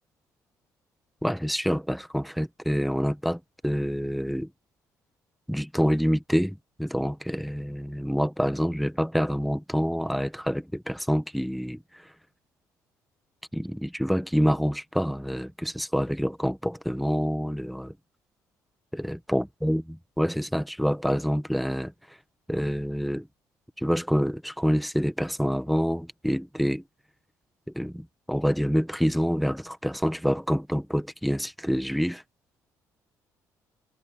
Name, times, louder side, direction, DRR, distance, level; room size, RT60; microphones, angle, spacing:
voice 1, 1.2-4.5 5.5-12.1 13.5-17.9 18.9-19.8 20.2-21.9 22.5-23.3 23.8-26.8 27.7-32.2, equal, ahead, 1.1 m, -27 dB
cardioid pair, 125°, 7 cm